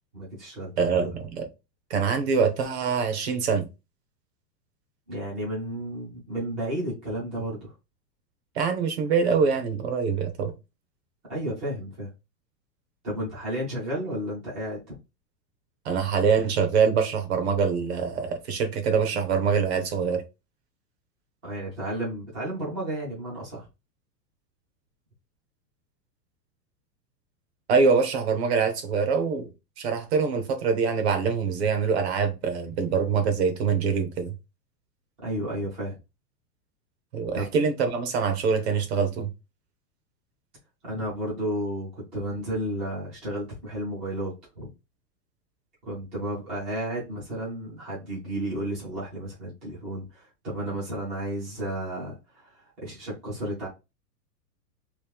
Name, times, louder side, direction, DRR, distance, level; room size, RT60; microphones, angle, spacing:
voice 1, 0.1-1.1 5.1-7.7 11.3-12.1 13.0-15.0 21.4-23.7 35.2-36.0 37.3-37.5 40.8-44.7 45.8-53.7, right 1 dB, 10° right, 0.4 m, -32 dB
voice 2, 0.8-1.5 1.9-3.6 8.6-10.5 15.8-20.2 27.7-29.5 29.8-34.3 37.1-39.3, right 5 dB, 40° right, 0.8 m, -24 dB
3.1 x 2.9 x 3.4 m
supercardioid pair, 170°, 49 cm